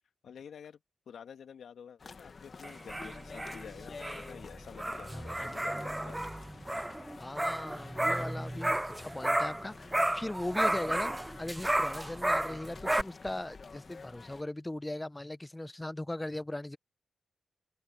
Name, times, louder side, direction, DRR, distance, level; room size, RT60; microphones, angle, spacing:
voice 1, 0.2-6.5, left 7 dB, 75° left, 2.0 m, -50 dB
sound 1, 2.0-14.4, left 4 dB, 50° left, 1.6 m, -50 dB
sound 2, 2.6-9.7 9.9-13.0, right 1 dB, 15° right, 0.4 m, -32 dB
voice 2, 7.2-16.8, left 1 dB, 15° left, 0.8 m, -39 dB
cardioid pair, 60°, 0 cm